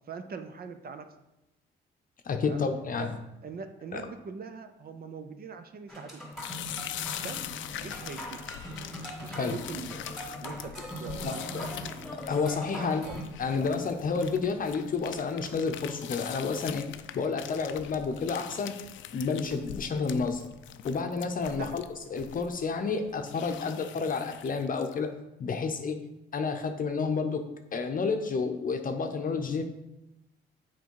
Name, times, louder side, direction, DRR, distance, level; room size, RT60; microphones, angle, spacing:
voice 1, 0.1-1.1 2.4-2.6 3.0-3.1 3.4-6.2 7.2-7.5 7.8-8.4 9.2-10.2 10.4-10.7 11.0-11.6 12.7-13.3 21.6-21.8 23.6-23.7, right 5 dB, 50° right, 8 dB, 0.7 m, -42 dB
voice 2, 2.2-3.1 3.9-4.1 9.4-9.6 11.2-11.7 12.3-13.0 13.4-16.8 17.1-18.8 19.1-20.4 20.8-21.8 22.1-25.1 25.4-26.0 26.3-27.4 27.7-29.6, left 5 dB, 45° left, 5 dB, 0.7 m, -30 dB
sound 1, 5.9-13.2, equal, ahead, 2.4 m, -41 dB
sound 2, 6.3-25.1, left 11 dB, 75° left, 0.4 m, -43 dB
7.0 x 4.3 x 4.7 m, 0.92 s
cardioid pair, 90°, 20 cm